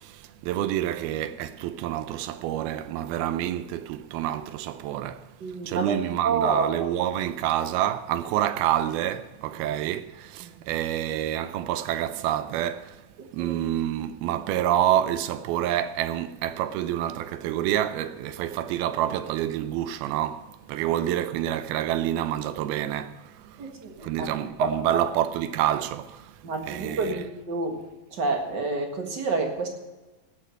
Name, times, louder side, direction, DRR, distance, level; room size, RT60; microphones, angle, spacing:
voice 1, 0.0-13.0 13.3-27.2, right 12 dB, 85° right, 2.5 m, -28 dB
voice 2, 5.4-6.9 10.4-10.5 13.2-13.5 23.6-24.3 24.6-25.0 26.4-27.8 28.1-29.7, right 3 dB, 45° right, 1.3 m, -29 dB
17.5 x 6.5 x 6.5 m
omnidirectional pair, 4.4 m